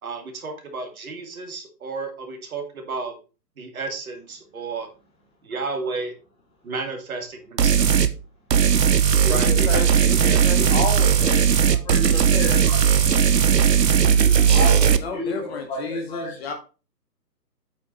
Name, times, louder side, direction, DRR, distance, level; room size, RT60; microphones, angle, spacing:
voice 1, 0.0-3.2 3.6-4.9 5.4-6.2 6.6-8.0 9.2-10.9, right 3 dB, 55° right, 2.4 m, -32 dB
sound 1, 7.6-8.1 8.5-15.0, right 8 dB, 75° right, 1.0 m, -17 dB
voice 2, 9.1-11.4 11.9-12.4 14.2-16.5, left 4 dB, 40° left, 2.0 m, -32 dB
voice 3, 11.2-13.5 14.3-16.3, left 2 dB, 10° left, 1.7 m, -33 dB
8.5 x 5.2 x 4.4 m
figure-of-eight pair, 140°, 49 cm